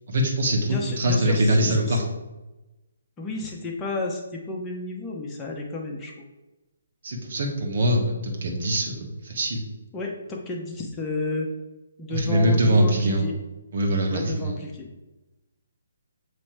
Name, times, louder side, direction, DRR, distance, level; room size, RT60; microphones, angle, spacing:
voice 1, 0.1-2.0 7.0-9.6 12.1-13.3 13.7-14.7, right 1 dB, 50° right, 0 dB, 1.4 m, -23 dB
voice 2, 0.6-2.0 3.2-6.2 9.9-11.5 12.0-13.3 14.1-14.9, left 3 dB, 15° left, -1 dB, 1.0 m, -32 dB
7.4 x 3.3 x 4.5 m, 1.0 s
figure-of-eight pair, 140°, 0 cm